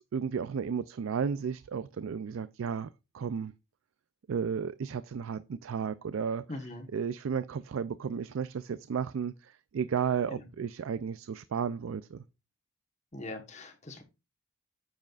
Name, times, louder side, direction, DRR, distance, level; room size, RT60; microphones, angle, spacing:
voice 1, 0.0-3.5 4.3-12.2, right 6 dB, 80° right, 0.4 m, -33 dB
voice 2, 6.5-6.9 10.3-10.4 13.1-14.0, left 2 dB, 35° left, 1.2 m, -41 dB
9.3 x 7.4 x 2.4 m
head